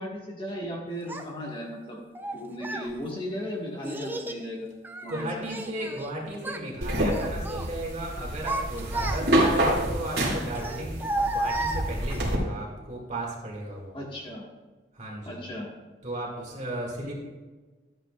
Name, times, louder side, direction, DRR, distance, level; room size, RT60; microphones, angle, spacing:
voice 1, 0.0-2.0 2.3-4.7 5.0-5.4 13.9-14.4 15.2-15.7, equal, 30° left, -2 dB, 1.6 m, -36 dB
Child speech kid speaking, 1.1-1.2 2.1-2.9 3.8-4.4 4.8-6.1 6.4-6.7 7.1-7.7 8.2-9.5 10.5-12.3, right 2 dB, 10° right, 0.5 m, -32 dB
voice 2, 5.1-13.9 14.9-15.4 16.0-17.1, right 1 dB, 40° right, -2 dB, 2.3 m, -35 dB
sound 1, 6.8-12.4, right 1 dB, 60° right, 2.4 m, -28 dB
13.0 x 8.9 x 2.4 m, 1.3 s
head